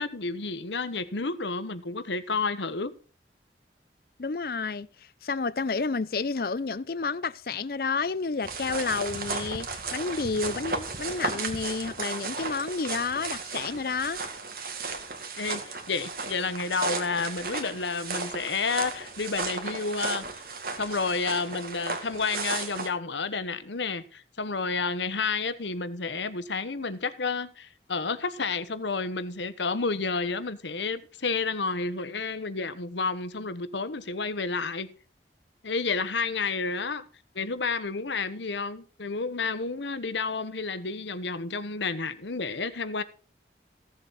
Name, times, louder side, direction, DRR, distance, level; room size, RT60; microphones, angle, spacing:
voice 1, 0.0-2.9 15.4-20.4 20.8-34.9 35.6-37.0 37.3-43.0, left 4 dB, 85° left, 1.1 m, -30 dB
voice 2, 4.2-4.9 5.2-14.2, left 4 dB, 55° left, 0.5 m, -30 dB
sound 1, 8.4-22.9, right 4 dB, 55° right, 1.9 m, -35 dB
15.5 x 7.5 x 4.1 m
head